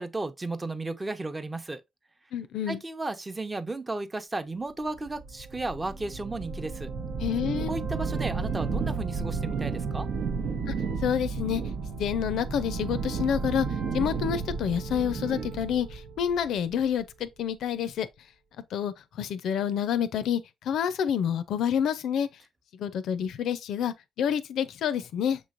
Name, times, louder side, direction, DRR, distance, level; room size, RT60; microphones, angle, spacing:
voice 1, 0.0-1.8 2.7-6.9 7.7-10.1, right 2 dB, 20° right, 0.6 m, -34 dB
voice 2, 2.3-2.8 7.2-7.8 10.7-10.8 11.0-11.6 12.0-13.7 13.9-18.1 18.7-22.3 22.7-25.4, left 8 dB, 80° left, 0.5 m, -28 dB
sound 1, 5.0-17.0, right 5 dB, 75° right, 0.7 m, -32 dB
6.4 x 3.1 x 2.5 m
cardioid pair, 90°, 0 cm